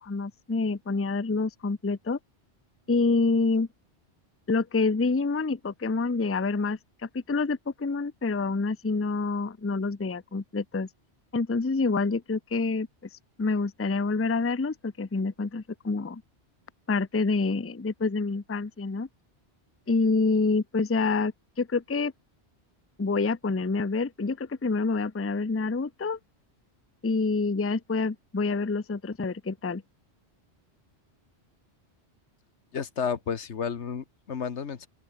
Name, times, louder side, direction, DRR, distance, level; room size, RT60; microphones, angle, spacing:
voice 1, 0.0-2.2 2.9-3.7 4.5-10.9 11.3-12.9 13.4-16.2 16.9-19.1 19.9-22.1 23.0-26.2 27.0-29.8, left 3 dB, 15° left, 0.5 m, -27 dB
voice 2, 32.7-34.9, left 7 dB, 85° left, 1.6 m, -32 dB
open air
omnidirectional pair, 1.1 m